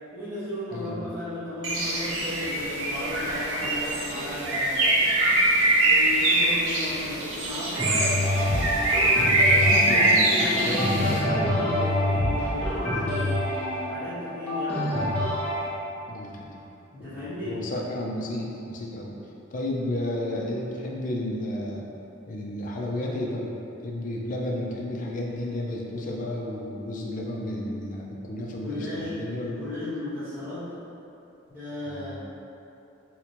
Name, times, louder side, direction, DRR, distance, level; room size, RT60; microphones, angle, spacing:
voice 1, 0.1-4.9 5.8-8.1 10.0-15.0 16.9-17.6 28.5-29.1 29.4-30.6 31.5-32.2, left 1 dB, 10° right, -16 dB, 1.1 m, -35 dB
Bird, 1.6-11.2, right 2 dB, 80° right, 0.6 m, -23 dB
sound 1, 7.8-15.7, left 1 dB, 5° left, 0.7 m, -26 dB
voice 2, 9.4-11.2 16.1-16.5 17.4-19.1 19.5-21.9 22.3-23.5 23.8-29.6 31.9-32.2, left 1 dB, 40° left, -2 dB, 0.4 m, -32 dB
4.1 x 2.1 x 2.9 m, 2.8 s
head